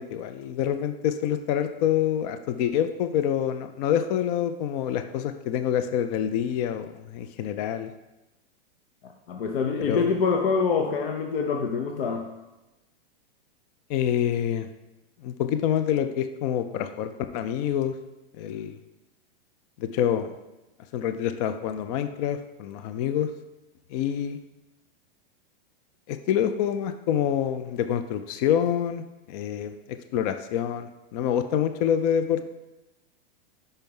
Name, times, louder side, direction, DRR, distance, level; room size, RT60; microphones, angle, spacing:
voice 1, 0.0-7.9 9.8-10.2 13.9-14.7 15.2-17.9 18.4-18.8 19.8-20.3 20.9-23.3 23.9-24.4 26.1-32.5, left 9 dB, 40° left, 9 dB, 0.4 m, -27 dB
voice 2, 9.0-12.3, left 5 dB, 70° left, 2 dB, 0.8 m, -26 dB
5.5 x 4.5 x 5.3 m, 1.0 s
hypercardioid pair, 140°, 30 cm